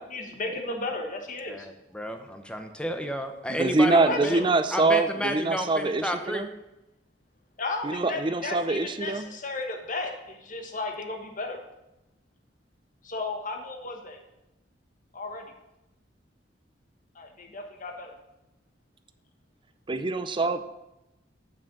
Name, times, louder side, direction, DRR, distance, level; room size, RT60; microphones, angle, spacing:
voice 1, 0.1-1.7 3.9-4.5 7.6-11.6 13.0-14.2 15.1-15.5 17.1-18.1, left 3 dB, 45° left, 4 dB, 1.2 m, -34 dB
voice 2, 1.5-4.4 4.7-6.4, equal, 5° left, 6 dB, 0.7 m, -31 dB
voice 3, 3.5-6.5 7.8-9.3 19.9-20.6, right 3 dB, 25° right, 10 dB, 0.5 m, -24 dB
6.9 x 6.1 x 6.1 m, 0.92 s
head